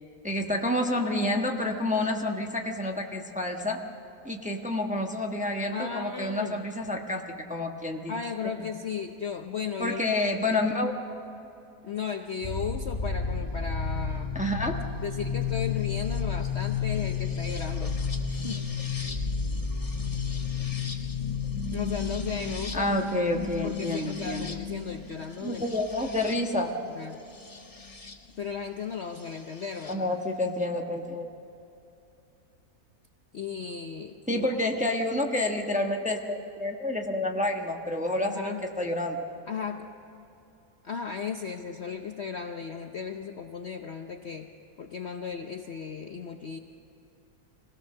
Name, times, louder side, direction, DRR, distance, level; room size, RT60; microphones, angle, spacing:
voice 1, 0.2-3.8 4.2-8.1 9.8-10.9 14.3-14.7 22.7-24.5 25.4-26.7 29.9-31.3 34.3-39.2, left 1 dB, 5° right, 2 dB, 1.0 m, -29 dB
voice 2, 5.7-6.7 8.1-10.0 10.4-10.6 11.8-14.3 15.0-18.0 18.3-18.7 21.7-23.0 23.6-25.7 26.9-27.2 28.4-30.1 33.3-34.5 38.2-38.7 39.5-39.9 40.8-44.5 44.8-46.6, left 6 dB, 55° left, 5 dB, 0.8 m, -35 dB
sound 1, 12.4-28.2 29.3-29.9, left 5 dB, 25° left, 1.2 m, -32 dB
25.5 x 17.5 x 6.7 m, 2.8 s
omnidirectional pair, 1.8 m